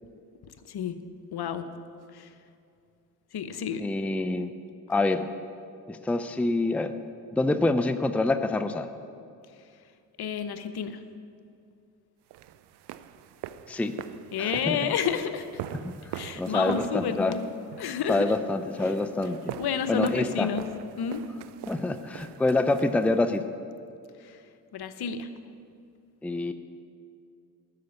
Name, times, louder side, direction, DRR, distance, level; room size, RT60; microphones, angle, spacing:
voice 1, 0.7-1.0 1.3-1.7 2.1-2.3 3.3-3.9 10.2-11.0 14.3-15.6 16.1-17.5 17.8-18.3 19.6-20.6 21.0-21.2 24.2-24.4 24.7-25.3, left 7 dB, 55° left, 10 dB, 0.9 m, -30 dB
voice 2, 3.8-4.5 4.9-5.3 5.9-6.9 7.3-8.9 13.7-14.0 14.4-14.9 15.8-15.9 16.4-17.3 18.1-19.6 19.9-20.5 21.7-23.4 26.2-26.5, left 2 dB, 5° left, 9 dB, 0.6 m, -26 dB
sound 1, 12.3-23.4, right 11 dB, 60° right, 0.6 m, -42 dB
12.5 x 5.8 x 8.2 m, 2.5 s
hypercardioid pair, 40°, 47 cm